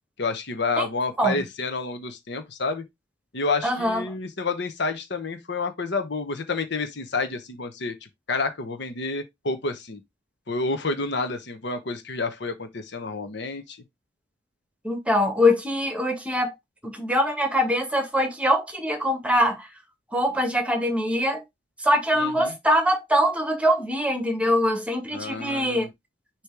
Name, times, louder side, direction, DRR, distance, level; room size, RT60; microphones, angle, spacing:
voice 1, 0.2-2.8 3.3-7.9 8.3-10.0 10.5-13.8 22.1-22.5 25.1-25.9, left 3 dB, 65° left, 1.1 m, -29 dB
voice 2, 3.6-4.0 14.8-16.5 16.8-19.7 20.1-21.4 21.8-25.9, equal, 5° right, 1.7 m, -23 dB
6.7 x 3.1 x 4.7 m
head